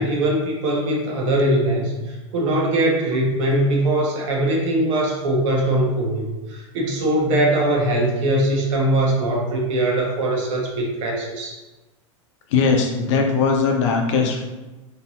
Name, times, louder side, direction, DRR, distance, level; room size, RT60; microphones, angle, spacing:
voice 1, 0.0-11.6, right 1 dB, 65° right, -1 dB, 1.2 m, -21 dB
voice 2, 12.5-14.4, left 5 dB, 65° left, 2 dB, 0.8 m, -19 dB
4.3 x 3.3 x 2.8 m, 1.1 s
hypercardioid pair, 100°, 17 cm